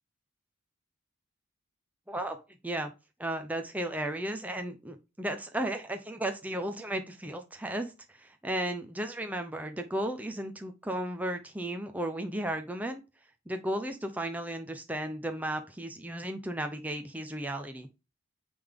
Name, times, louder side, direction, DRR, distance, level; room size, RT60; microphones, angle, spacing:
voice 1, 2.1-2.4 2.6-2.9 3.2-13.0 13.5-17.9, right 1 dB, 5° right, 5 dB, 0.6 m, -34 dB
9.2 x 3.6 x 3.7 m, 0.28 s
head